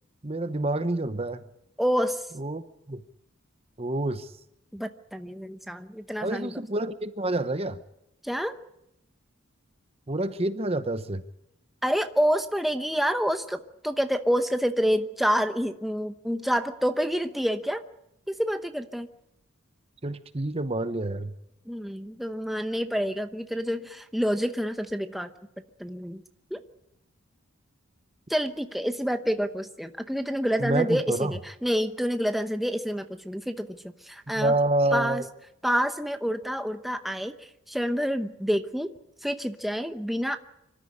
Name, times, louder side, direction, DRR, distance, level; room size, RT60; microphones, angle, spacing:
voice 1, 0.2-1.4 2.4-3.0 3.8-4.3 6.2-7.8 10.1-11.2 20.0-21.3 30.6-31.3 34.3-35.3, right 2 dB, 25° right, 12 dB, 0.8 m, -28 dB
voice 2, 1.8-2.3 4.7-6.5 8.2-8.6 11.8-17.8 18.3-19.1 21.7-25.3 25.8-26.2 26.5-26.6 28.3-31.1 31.3-33.8 34.0-34.5 34.9-35.2 35.6-38.9 39.2-40.4, equal, ahead, 7 dB, 0.8 m, -28 dB
25.5 x 13.5 x 9.7 m, 0.85 s
head